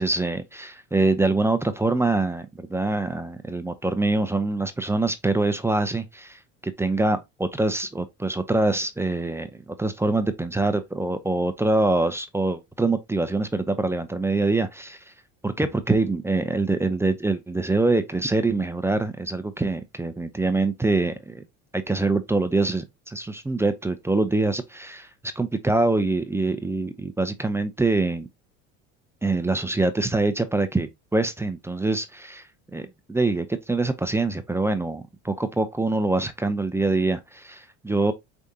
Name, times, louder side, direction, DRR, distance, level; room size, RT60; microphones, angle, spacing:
voice 1, 0.0-15.0 15.4-21.4 21.7-25.1 25.4-28.3 29.2-32.4 32.7-38.1, right 2 dB, 10° right, 0.6 m, -24 dB
5.0 x 3.4 x 2.8 m
supercardioid pair, 90°, 34 cm